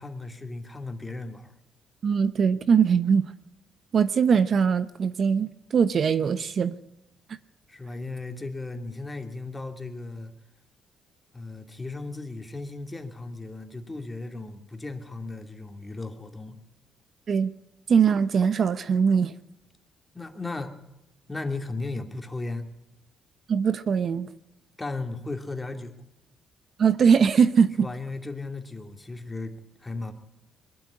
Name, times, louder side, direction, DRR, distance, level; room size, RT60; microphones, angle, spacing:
voice 1, 0.0-1.5 7.7-10.3 11.3-16.6 20.1-20.7 21.3-22.7 24.8-25.9 27.8-29.5 29.8-30.1, left 3 dB, 15° left, 5 dB, 2.5 m, -36 dB
voice 2, 2.0-3.3 3.9-6.7 17.3-17.5 17.9-19.3 23.5-24.3 26.8-27.9, right 6 dB, 55° right, 13 dB, 0.9 m, -21 dB
22.0 x 12.5 x 10.0 m, 0.93 s
cardioid pair, 90°, 0 cm